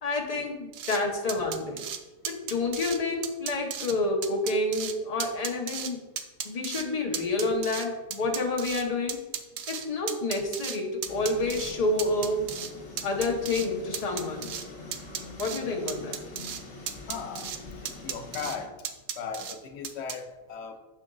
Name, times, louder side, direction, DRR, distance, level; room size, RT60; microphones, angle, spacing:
voice 1, 0.0-1.8 2.2-6.0 6.4-9.2 9.7-12.4 13.0-14.5 15.4-16.2, left 2 dB, 40° left, 1 dB, 0.9 m, -29 dB
sound 1, 0.7-1.0 1.3-2.0 2.3-3.0 3.2-3.9 4.2-4.9 5.2-5.9 6.2-6.8 7.1-8.8 9.1-10.8 11.0-11.7 12.0-12.7 13.0-13.7 13.9-14.7 14.9-15.6 15.9-16.6 16.9-17.6 17.9-18.6 18.8-19.6 19.8-20.2, right 8 dB, 90° right, 0.9 m, -35 dB
sound 2, 11.1-18.7, left 3 dB, 65° left, 1.3 m, -44 dB
voice 2, 17.1-17.5 17.8-18.8 19.2-20.8, left 6 dB, 90° left, 7 dB, 0.9 m, -37 dB
5.9 x 4.6 x 3.8 m, 1.1 s
omnidirectional pair, 1.1 m